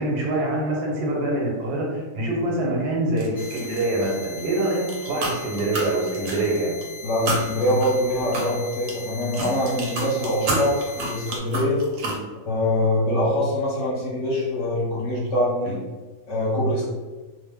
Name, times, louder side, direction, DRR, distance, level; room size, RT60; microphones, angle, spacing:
voice 1, 0.0-6.8 12.0-12.2 15.6-15.7, right 1 dB, 85° right, -2 dB, 1.4 m, -25 dB
sound 1, 3.2-4.4 4.7-6.8 7.3-12.2, right 2 dB, 60° right, 0.9 m, -30 dB
sound 2, 3.4-11.4, left 3 dB, 70° left, 0.5 m, -40 dB
voice 2, 7.0-11.8 12.5-15.8 16.3-16.9, left 1 dB, 55° left, -6 dB, 1.0 m, -23 dB
2.9 x 2.0 x 3.4 m, 1.2 s
omnidirectional pair, 1.7 m